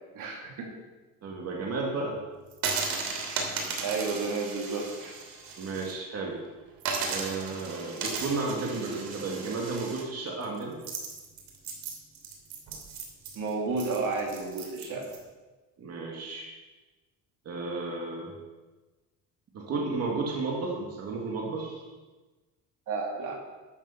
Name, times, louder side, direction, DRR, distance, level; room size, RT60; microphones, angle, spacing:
voice 1, 0.1-0.7 3.8-5.2 13.3-15.1 22.9-23.4, right 4 dB, 65° right, 1 dB, 2.8 m, -32 dB
voice 2, 1.2-2.2 5.6-6.4 7.1-10.8 15.8-16.5 17.4-18.3 19.5-21.9, right 3 dB, 45° right, -1 dB, 2.4 m, -33 dB
sound 1, 2.5-5.9 6.3-6.4 6.8-15.2, right 4 dB, 80° right, 2.9 m, -36 dB
13.0 x 7.4 x 6.8 m, 1.2 s
cardioid pair, 135°, 34 cm